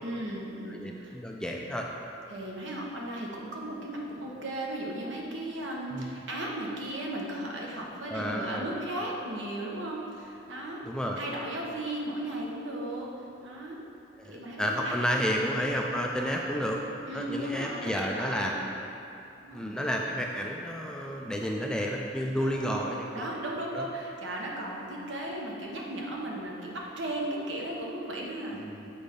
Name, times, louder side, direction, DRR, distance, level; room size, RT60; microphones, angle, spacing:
voice 1, 0.0-1.1 2.3-10.8 11.2-13.1 13.4-13.8 14.2-15.5 17.1-18.5 19.4-19.9 22.4-28.6, right 1 dB, 80° right, -2 dB, 1.1 m, -36 dB
voice 2, 0.7-1.9 5.9-6.2 8.1-8.7 10.8-11.2 14.2-16.8 17.1-18.9 19.5-23.3 23.7-23.9 28.5-28.9, equal, 5° left, 0 dB, 0.4 m, -31 dB
7.1 x 4.2 x 5.3 m, 2.7 s
head